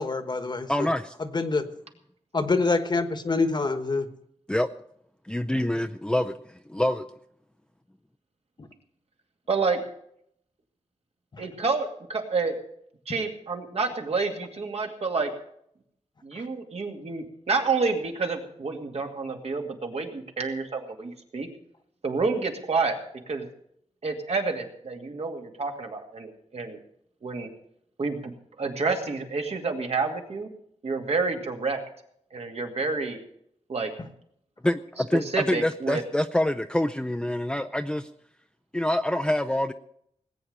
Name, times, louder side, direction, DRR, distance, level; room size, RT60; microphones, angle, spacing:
voice 1, 0.0-0.9 1.2-1.7 2.3-4.1 8.6-8.7 11.3-11.4, left 3 dB, 40° left, 9 dB, 1.2 m, -26 dB
voice 2, 0.7-1.1 4.5-4.7 5.3-7.1 34.6-38.1 38.7-39.7, left 1 dB, 10° left, 8 dB, 0.5 m, -26 dB
voice 3, 9.5-9.8 11.4-12.6 13.1-15.3 16.2-21.5 22.0-23.0 23.3-23.5 24.0-26.8 27.2-27.5 28.0-28.3 28.6-30.5 30.8-31.8 32.3-33.2 33.7-33.9 35.3-36.0, right 4 dB, 65° right, 3 dB, 2.3 m, -29 dB
19.0 x 8.8 x 6.7 m, 0.71 s
wide cardioid pair, 115°, 11 cm